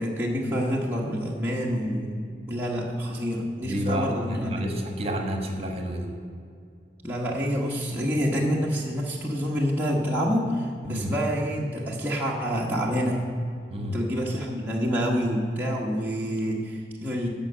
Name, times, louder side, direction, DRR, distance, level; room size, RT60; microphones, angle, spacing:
voice 1, 0.0-4.6 7.0-13.2 13.8-17.3, equal, 10° right, -4 dB, 1.1 m, -27 dB
voice 2, 3.6-6.1 10.9-11.1 13.7-14.0, equal, 35° right, 3 dB, 1.4 m, -30 dB
13.5 x 5.4 x 7.6 m, 2.4 s
head